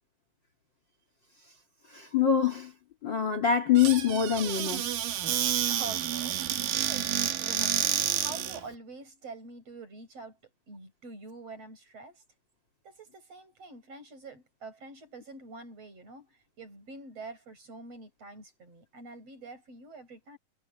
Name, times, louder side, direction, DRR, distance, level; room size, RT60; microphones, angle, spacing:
voice 1, 1.9-2.7 3.0-4.8, left 8 dB, 35° left, 3.0 m, -25 dB
Squeak / Cupboard open or close, 3.8-8.6, right 11 dB, 80° right, 3.2 m, -29 dB
voice 2, 5.7-10.4 10.7-12.2 12.8-20.4, right 3 dB, 45° right, 9.1 m, -46 dB
omnidirectional pair, 3.9 m